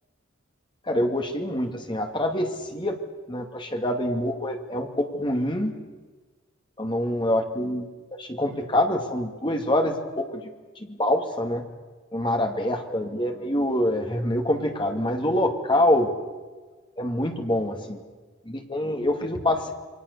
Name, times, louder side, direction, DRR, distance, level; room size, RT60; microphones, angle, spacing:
voice 1, 0.8-3.0 3.3-5.7 6.8-10.5 10.8-11.7 12.1-16.1 17.0-18.0 18.4-19.7, left 1 dB, 25° left, 4 dB, 2.4 m, -25 dB
28.5 x 23.0 x 6.9 m, 1.3 s
head